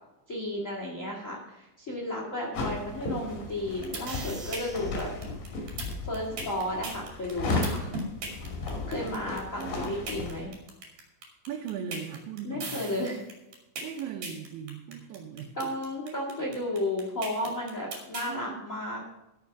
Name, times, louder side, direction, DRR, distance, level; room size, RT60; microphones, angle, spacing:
voice 1, 0.3-5.1 5.5-5.7 6.1-7.9 8.9-10.5 12.4-13.2 15.5-19.0, left 1 dB, 75° left, -2 dB, 0.7 m, -33 dB
sound 1, 2.5-10.5, left 2 dB, 50° left, 3.6 m, -35 dB
sound 2, 3.6-18.3, right 3 dB, 45° right, 3.6 m, -38 dB
voice 2, 9.6-10.0 11.5-12.8 13.8-15.7 16.0-16.5 18.3-18.6, right 7 dB, 75° right, 0 dB, 3.3 m, -39 dB
14.0 x 7.0 x 5.9 m, 0.95 s
omnidirectional pair, 5.5 m